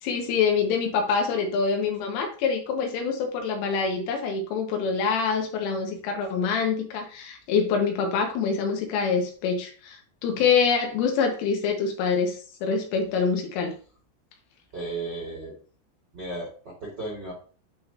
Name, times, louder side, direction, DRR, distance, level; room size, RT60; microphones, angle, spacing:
voice 1, 0.0-13.8, left 5 dB, 85° left, 3 dB, 3.9 m, -25 dB
voice 2, 14.7-15.6 16.1-17.3, right 2 dB, 60° right, -2 dB, 1.1 m, -34 dB
11.0 x 4.1 x 2.7 m, 0.41 s
omnidirectional pair, 5.7 m